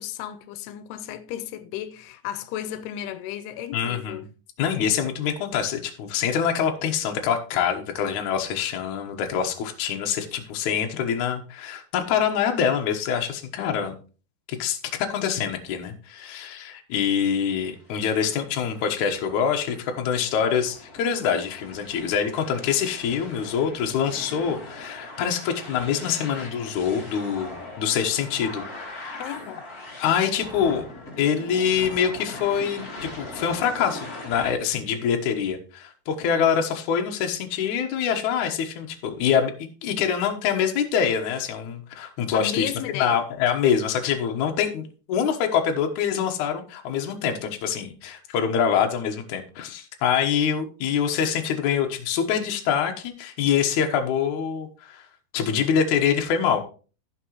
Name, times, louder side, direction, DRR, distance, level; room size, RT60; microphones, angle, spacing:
voice 1, 0.0-4.3 29.2-29.6 42.3-43.2, left 11 dB, 90° left, 2.6 m, -34 dB
voice 2, 3.7-4.2 4.6-13.9 14.5-29.2 30.0-30.8 31.2-39.5 39.8-55.1 55.3-56.6, left 7 dB, 65° left, 2.1 m, -25 dB
sound 1, 17.7-34.5, left 2 dB, 30° left, 2.1 m, -40 dB
15.5 x 5.9 x 3.0 m
omnidirectional pair, 4.6 m